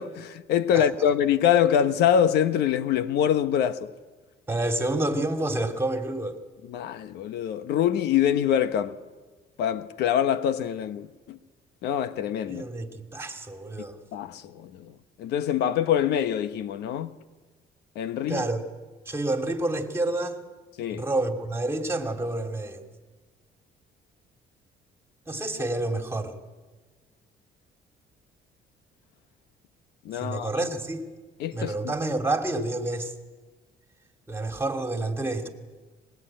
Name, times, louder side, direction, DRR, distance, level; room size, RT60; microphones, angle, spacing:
voice 1, 0.0-3.9 6.7-9.0 9.6-11.4 11.8-12.6 14.1-14.9 15.2-17.1 17.9-18.4 20.8-21.0 30.0-30.5 31.4-31.9, left 9 dB, 80° left, 1.1 m, -24 dB
voice 2, 4.5-6.4 12.5-14.0 18.3-18.6 19.1-20.4 20.9-22.8 25.3-26.3 30.1-31.1 31.5-33.1 34.3-35.5, right 2 dB, 15° right, 2.7 m, -28 dB
24.0 x 21.0 x 8.9 m
cardioid pair, 110°, 17 cm